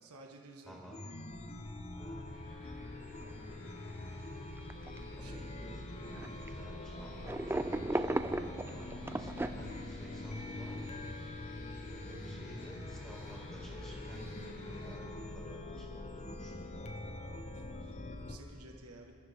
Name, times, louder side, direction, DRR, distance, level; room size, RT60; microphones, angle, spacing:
voice 1, 0.0-0.9 5.1-5.6 7.4-7.6 13.8-13.9 17.5-19.1, right 2 dB, 80° right, 0 dB, 1.5 m, -55 dB
voice 2, 0.6-1.0 1.9-2.4 3.2-3.7 5.1-11.1 11.9-16.9, equal, 5° left, -7 dB, 4.5 m, -51 dB
Chime, 0.9-18.4, left 2 dB, 30° left, 0.8 m, -44 dB
sound 1, 2.2-14.9, left 1 dB, 75° left, 5.2 m, -57 dB
sound 2, 3.2-3.3 3.6-3.8 4.6-5.3 6.2-6.5 7.2-9.5, right 1 dB, 10° right, 0.3 m, -35 dB
28.0 x 14.0 x 3.6 m, 2.6 s
head